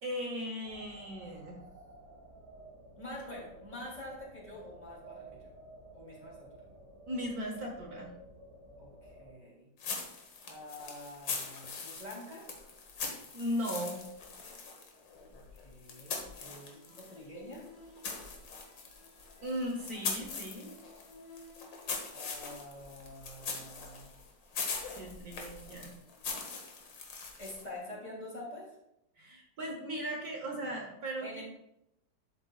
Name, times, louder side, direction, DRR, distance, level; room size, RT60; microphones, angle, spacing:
voice 1, 0.0-1.6 7.1-8.1 13.3-14.0 15.9-16.3 19.4-20.7 25.0-25.9 29.2-31.4, equal, 55° right, 1 dB, 1.7 m, -37 dB
sound 1, 0.6-9.3, right 1 dB, 10° right, 3.6 m, -53 dB
voice 2, 3.0-5.5 5.9-6.7 8.8-9.7 10.4-12.5 15.3-17.6 22.1-24.1 27.4-28.7 31.2-31.4, left 1 dB, 20° left, -5 dB, 3.4 m, -46 dB
sound 2, 9.8-17.2 17.5-27.8, left 5 dB, 90° left, 2.1 m, -42 dB
sound 3, 16.2-22.4, left 1 dB, 60° left, 2.7 m, -57 dB
12.0 x 7.7 x 2.5 m, 0.83 s
omnidirectional pair, 2.0 m